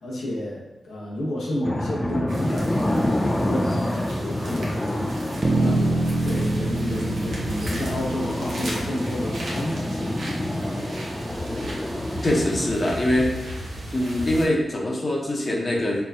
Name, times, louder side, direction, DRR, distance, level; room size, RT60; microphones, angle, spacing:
voice 1, 0.0-5.9 6.2-10.2 13.1-13.2, left 1 dB, 85° left, -5 dB, 1.0 m, -30 dB
sound 1, 1.6-12.8, left 1 dB, 15° left, 0.4 m, -28 dB
sound 2, 2.3-14.5, equal, 80° right, 0.9 m, -36 dB
Bass guitar, 5.4-9.9, right 2 dB, 40° right, 0.6 m, -26 dB
voice 2, 12.2-13.3 13.9-16.0, left 1 dB, 40° left, -2 dB, 0.9 m, -23 dB
4.4 x 2.3 x 2.8 m, 1.0 s
cardioid pair, 45°, 0 cm